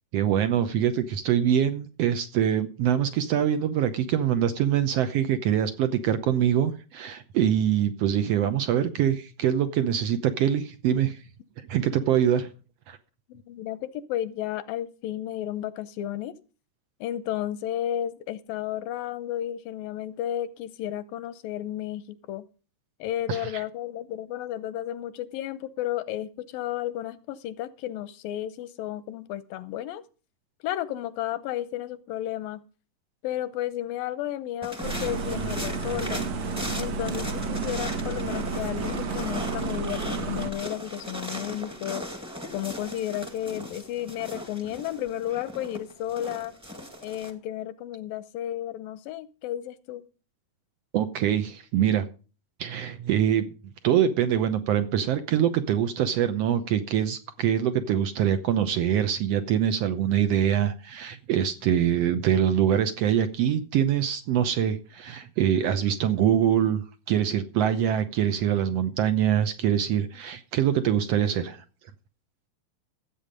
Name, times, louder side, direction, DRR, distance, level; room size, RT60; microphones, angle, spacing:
voice 1, 0.1-11.2 11.7-12.5 12.9-13.0 23.3-23.6 50.9-52.0 52.6-53.5 53.8-66.8 67.1-71.6, right 9 dB, 85° right, 1.4 m, -24 dB
voice 2, 13.3-16.4 17.0-22.5 23.0-30.0 30.6-32.6 33.2-36.3 36.8-42.0 42.5-46.5 47.0-50.0, left 12 dB, 85° left, 2.6 m, -33 dB
sound 1, 34.6-47.3, left 1 dB, 5° right, 1.0 m, -38 dB
sound 2, 34.8-40.5, right 4 dB, 60° right, 2.1 m, -31 dB
14.5 x 8.6 x 5.2 m
omnidirectional pair, 3.9 m